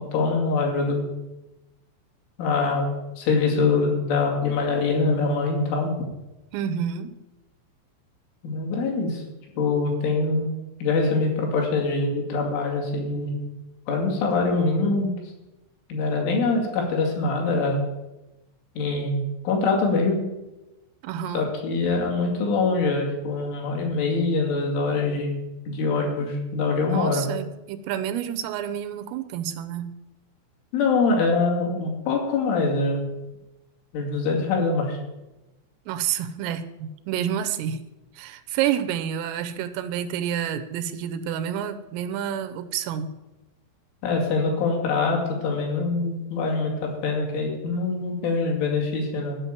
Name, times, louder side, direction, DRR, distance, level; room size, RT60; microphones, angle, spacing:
voice 1, 0.1-1.1 2.4-2.9 3.2-5.9 8.4-9.2 9.6-10.5 10.8-13.4 13.9-15.1 15.9-17.8 18.8-20.3 21.3-25.4 25.7-27.2 30.7-33.1 33.9-35.0 44.0-49.4, left 3 dB, 70° left, -1 dB, 4.7 m, -24 dB
voice 2, 6.5-7.2 21.0-21.5 26.2-26.3 26.9-30.0 35.9-37.8 38.1-43.1, right 9 dB, 80° right, 10 dB, 3.2 m, -29 dB
12.5 x 5.8 x 9.0 m, 0.99 s
omnidirectional pair, 5.9 m